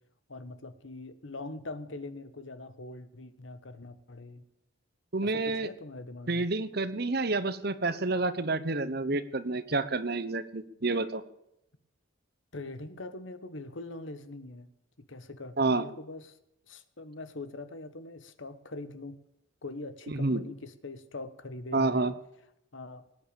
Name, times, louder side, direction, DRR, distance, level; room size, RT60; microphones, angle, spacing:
voice 1, 0.3-4.4 5.2-6.5 12.5-14.7 15.1-16.4 16.7-19.2 19.6-22.1 22.7-23.0, left 2 dB, 75° left, 12 dB, 1.4 m, -42 dB
voice 2, 5.1-5.7 6.3-11.2 15.6-15.8 20.1-20.4 21.7-22.1, right 3 dB, 55° right, 13 dB, 1.1 m, -29 dB
19.5 x 9.9 x 7.0 m, 0.82 s
head